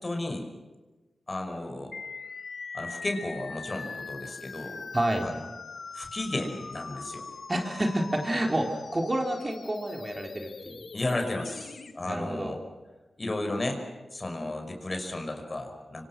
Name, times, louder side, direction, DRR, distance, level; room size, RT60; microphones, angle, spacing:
voice 1, 0.0-0.4 1.3-1.9 2.7-4.8 5.2-5.4 5.9-7.2 10.9-12.6 13.2-13.8 14.1-16.0, left 2 dB, 40° left, 5 dB, 5.7 m, -33 dB
sound 1, 1.9-11.9, left 4 dB, 75° left, 1.8 m, -42 dB
voice 2, 4.9-5.3 7.5-10.8 12.0-12.5, right 1 dB, 30° right, 2 dB, 4.2 m, -29 dB
25.5 x 25.5 x 6.2 m, 1.2 s
cardioid pair, 50°, 0 cm